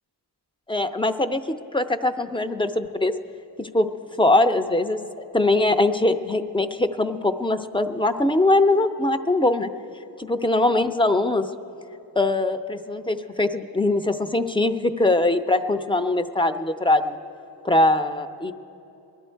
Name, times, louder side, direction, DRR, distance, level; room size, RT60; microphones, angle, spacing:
voice 1, 0.7-1.4 1.7-3.1 3.6-3.9 4.2-5.0 5.3-9.7 10.2-11.5 12.2-17.2 17.6-18.5, left 2 dB, 10° left, 8 dB, 0.5 m, -21 dB
20.5 x 12.0 x 4.5 m, 2.9 s
wide cardioid pair, 80°, 43 cm